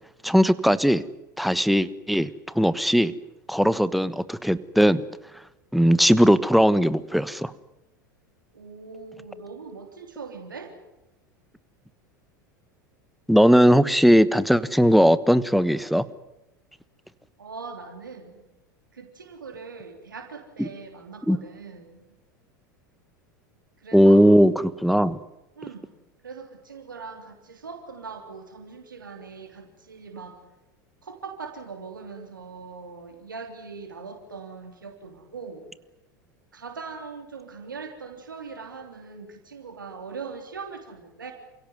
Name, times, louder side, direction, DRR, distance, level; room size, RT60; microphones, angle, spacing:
voice 1, 0.2-1.0 1.4-2.3 2.5-3.1 3.5-5.0 5.7-7.5 13.3-16.0 20.6-20.7 21.3-21.4 23.9-25.2, equal, ahead, 15 dB, 1.3 m, -18 dB
voice 2, 8.5-10.7 17.4-18.4 18.9-22.1 23.8-24.2 25.5-25.9 26.2-30.4 31.0-35.7 36.5-41.3, right 5 dB, 85° right, 4 dB, 3.2 m, -41 dB
28.5 x 17.0 x 9.6 m, 0.95 s
hypercardioid pair, 85°, 11 cm